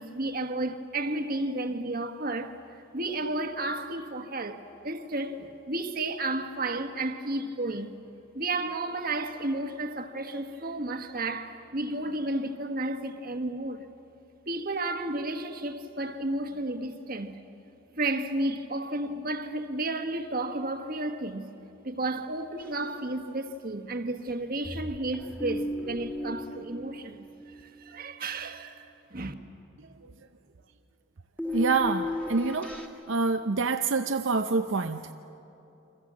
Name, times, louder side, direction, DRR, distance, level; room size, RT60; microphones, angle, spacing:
voice 1, 0.0-7.9 8.3-13.9 14.5-17.4 17.9-21.5 21.8-28.8 29.1-29.3, right 2 dB, 45° right, 1.4 m, -32 dB
sound 1, 22.6-23.2 23.5-23.6 24.6-27.8 31.4-32.9, left 1 dB, 5° left, 2.0 m, -35 dB
voice 2, 29.8-30.1 31.5-35.1, right 4 dB, 70° right, 0.6 m, -27 dB
29.0 x 25.0 x 7.5 m
head